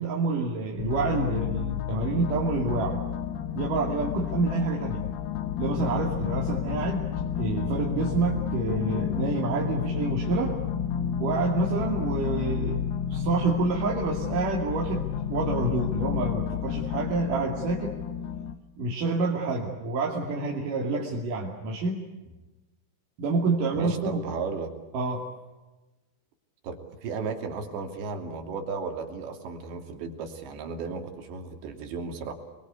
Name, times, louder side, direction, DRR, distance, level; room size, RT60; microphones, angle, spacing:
voice 1, 0.0-3.0 3.5-5.0 5.6-7.1 7.4-10.5 11.2-12.8 13.1-17.9 18.8-22.0 23.2-24.2 24.9-25.2, right 3 dB, 50° right, -1 dB, 3.7 m, -28 dB
sound 1, 0.8-18.5, left 9 dB, 65° left, 2.6 m, -30 dB
voice 2, 23.7-24.7 26.6-32.3, right 4 dB, 65° right, 4 dB, 4.9 m, -34 dB
29.0 x 22.5 x 8.3 m, 1.2 s
omnidirectional pair, 5.6 m